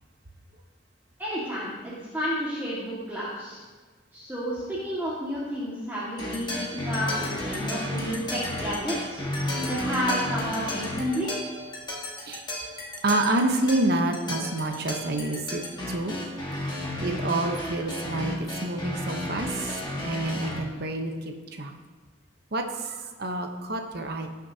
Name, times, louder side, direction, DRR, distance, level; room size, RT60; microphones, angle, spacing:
voice 1, 1.2-3.6 4.1-9.2 9.6-11.3, equal, 10° right, -9 dB, 1.8 m, -31 dB
sound 1, 6.2-20.6, left 1 dB, 25° left, 1.6 m, -33 dB
voice 2, 13.0-15.6 15.9-16.1 16.6-21.7 22.5-24.3, right 2 dB, 55° right, 4 dB, 1.0 m, -28 dB
18.0 x 6.4 x 2.8 m, 1.4 s
head